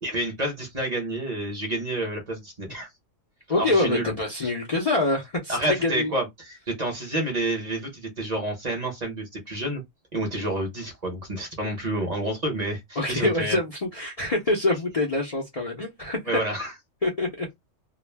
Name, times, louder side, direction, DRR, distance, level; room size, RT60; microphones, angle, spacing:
voice 1, 0.0-2.9 3.6-4.1 4.4-4.5 5.5-9.8 10.1-13.6 16.3-16.7, right 1 dB, 40° right, 0.8 m, -29 dB
voice 2, 3.5-6.1 13.0-16.2 17.0-17.5, left 2 dB, 40° left, 0.5 m, -25 dB
2.3 x 2.1 x 3.2 m
omnidirectional pair, 1.3 m